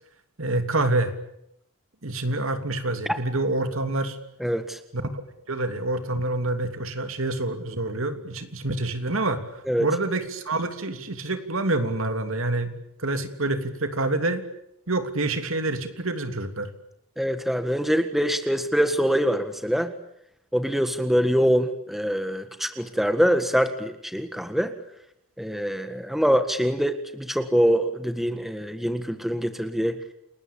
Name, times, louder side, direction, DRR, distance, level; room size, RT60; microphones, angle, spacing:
voice 1, 0.4-1.1 2.0-4.2 4.9-5.0 5.5-14.4 14.9-16.7, right 2 dB, 65° right, 8 dB, 3.1 m, -27 dB
voice 2, 4.4-4.8 9.7-9.9 17.2-19.9 20.5-24.7 25.4-30.0, equal, ahead, 8 dB, 1.6 m, -24 dB
29.5 x 20.5 x 8.8 m, 0.79 s
head